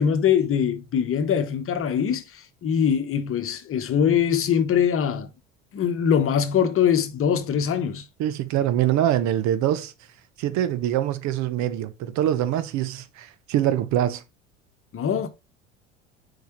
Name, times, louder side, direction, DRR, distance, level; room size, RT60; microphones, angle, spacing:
voice 1, 0.0-5.3 5.7-8.0 14.9-15.3, left 8 dB, 35° left, 1.3 m, -22 dB
voice 2, 8.2-9.9 10.4-14.2, right 11 dB, 50° right, 1.0 m, -24 dB
8.0 x 5.0 x 3.1 m
hypercardioid pair, 70°, 38 cm